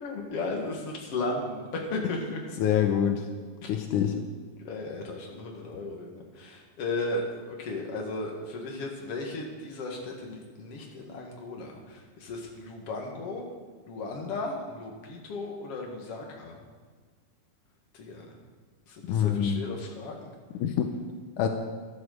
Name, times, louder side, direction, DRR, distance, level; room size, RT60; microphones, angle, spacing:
voice 1, 0.0-2.4 3.6-3.7 4.6-13.5 13.9-16.6 17.9-18.4 18.9-20.3, left 2 dB, 50° left, 0 dB, 2.7 m, -35 dB
voice 2, 2.6-3.2 3.7-4.2 19.0-19.6 20.6-20.9 21.4-21.5, left 9 dB, 85° left, 5 dB, 2.3 m, -25 dB
12.5 x 10.5 x 6.6 m, 1.5 s
omnidirectional pair, 3.6 m